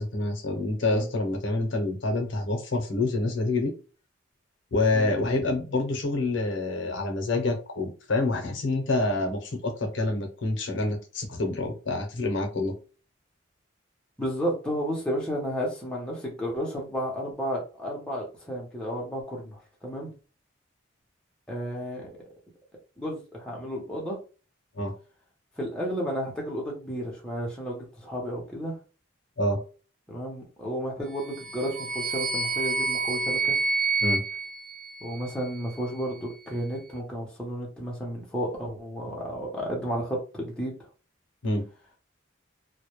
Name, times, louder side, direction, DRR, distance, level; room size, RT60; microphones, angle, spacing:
voice 1, 0.0-3.7 4.7-12.7 24.8-24.9 29.4-29.6 34.0-34.2 41.4-41.7, left 2 dB, 70° left, 3 dB, 0.6 m, -27 dB
voice 2, 14.2-20.1 21.5-22.2 23.0-24.2 25.6-28.8 30.1-33.6 35.0-40.7, equal, 5° left, -3 dB, 0.6 m, -32 dB
sound 1, 31.2-35.5, right 4 dB, 35° right, 0.6 m, -28 dB
2.1 x 2.1 x 2.9 m, 0.35 s
head